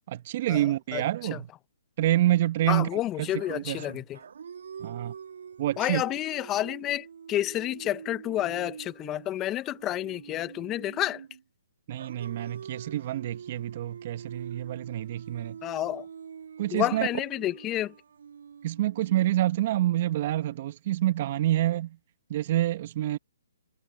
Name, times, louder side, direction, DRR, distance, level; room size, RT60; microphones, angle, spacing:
voice 1, 0.1-1.5 2.0-4.0 4.8-5.1 5.6-6.0 11.9-15.6 16.6-17.1 18.6-22.0 22.3-23.2, right 14 dB, 40° right, 1.5 m, -27 dB
voice 2, 2.7-4.2 5.8-11.2 15.6-16.0 16.7-17.9, left 14 dB, 20° left, 0.9 m, -30 dB
sound 1, 3.4-11.4 12.0-20.0, right 7 dB, 65° right, 2.6 m, -45 dB
hypercardioid pair, 145°, 0 cm